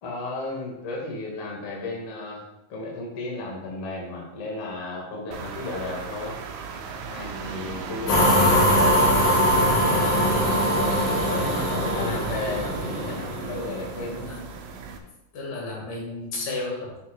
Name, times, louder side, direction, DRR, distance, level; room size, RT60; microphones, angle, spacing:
voice 1, 0.0-2.4 2.7-6.4 7.1-10.1 11.2-14.3, left 2 dB, 50° left, -3 dB, 2.3 m, -34 dB
sound 1, 5.3-15.0, right 5 dB, 75° right, 1.9 m, -35 dB
sound 2, 8.1-14.3, equal, 90° left, 3.4 m, -22 dB
voice 2, 15.3-17.0, left 2 dB, 70° left, -2 dB, 3.3 m, -33 dB
9.3 x 7.2 x 2.2 m, 0.90 s
omnidirectional pair, 3.8 m